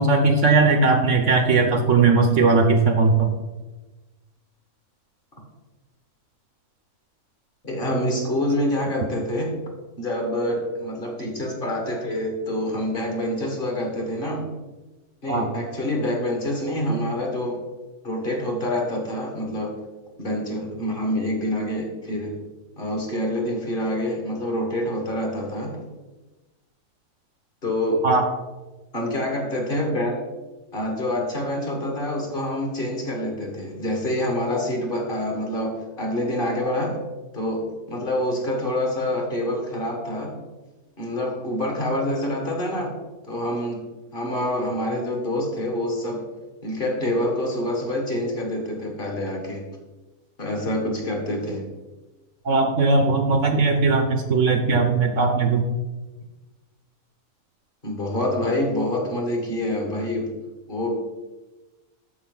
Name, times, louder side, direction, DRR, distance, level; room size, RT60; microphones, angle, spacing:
voice 1, 0.0-3.3 15.3-15.5 28.0-28.3 52.4-55.6, right 4 dB, 60° right, 5 dB, 1.1 m, -19 dB
voice 2, 7.6-9.6 10.0-14.5 15.2-17.6 18.0-19.7 20.2-22.4 22.8-25.8 27.6-28.1 28.9-30.2 30.7-37.0 37.3-40.3 41.0-42.9 43.3-43.8 44.1-46.2 46.6-49.6 50.4-51.7 57.8-60.3 60.7-60.9, left 1 dB, 35° left, 1 dB, 1.9 m, -26 dB
13.0 x 5.1 x 4.0 m, 1.1 s
omnidirectional pair, 1.6 m